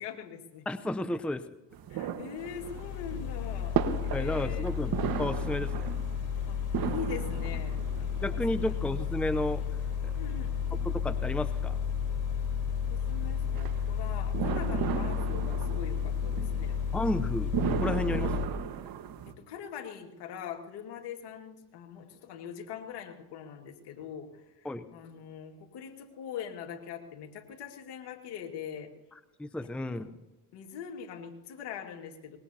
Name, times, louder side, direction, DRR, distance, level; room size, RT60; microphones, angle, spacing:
voice 1, 0.0-0.7 1.9-4.7 6.5-8.8 10.2-10.6 12.9-16.8 18.1-18.2 19.5-28.9 29.6-30.2 30.5-32.4, left 7 dB, 65° left, 3 dB, 2.2 m, -42 dB
voice 2, 0.7-1.4 4.1-6.0 8.2-9.6 10.0-10.1 10.8-11.8 16.9-18.3 24.6-24.9 29.4-30.1, left 1 dB, 5° left, 11 dB, 0.7 m, -32 dB
sound 1, 1.7-19.3, right 8 dB, 55° right, 1.5 m, -37 dB
sound 2, 2.4-18.5, left 7 dB, 45° left, 4.4 m, -32 dB
24.0 x 20.5 x 2.8 m, 1.0 s
hypercardioid pair, 70°, 44 cm